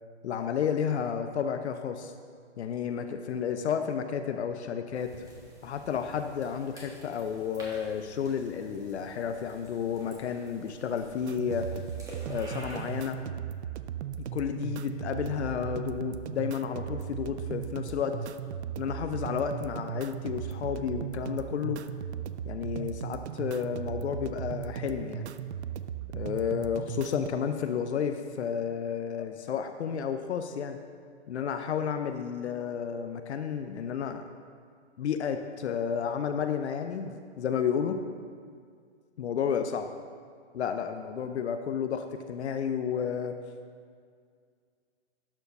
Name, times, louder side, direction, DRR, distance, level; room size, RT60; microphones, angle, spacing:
voice 1, 0.2-2.1 2.6-5.1 5.6-11.7 12.3-13.2 14.3-18.1 18.8-21.8 22.5-25.3 26.1-30.8 31.3-34.2 35.0-38.0 39.2-39.9 40.5-43.4, left 7 dB, 70° left, 7 dB, 0.7 m, -31 dB
sound 1, 4.9-13.2, right 1 dB, 10° right, 1.2 m, -50 dB
sound 2, 11.3-27.3, right 9 dB, 65° right, 0.5 m, -37 dB
12.0 x 4.5 x 5.3 m, 2.1 s
hypercardioid pair, 145°, 35 cm